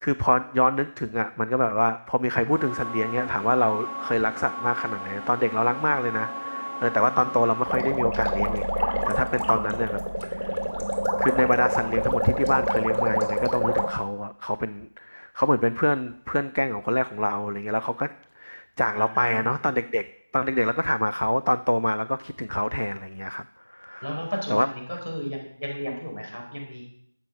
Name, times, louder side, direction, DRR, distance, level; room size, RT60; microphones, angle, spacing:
voice 1, 0.0-10.0 10.3-10.6 11.2-20.0 20.3-23.4 23.7-24.2 24.5-24.7, left 1 dB, 55° left, 14 dB, 0.3 m, -25 dB
sound 1, 2.5-7.6, equal, 15° left, 4.0 m, -34 dB
sound 2, 7.7-13.9, equal, 55° right, 2.3 m, -26 dB
voice 2, 18.9-19.5 24.0-26.8, equal, 75° left, 0 dB, 4.3 m, -33 dB
11.0 x 7.5 x 5.2 m, 0.70 s
figure-of-eight pair, 175°, 0 cm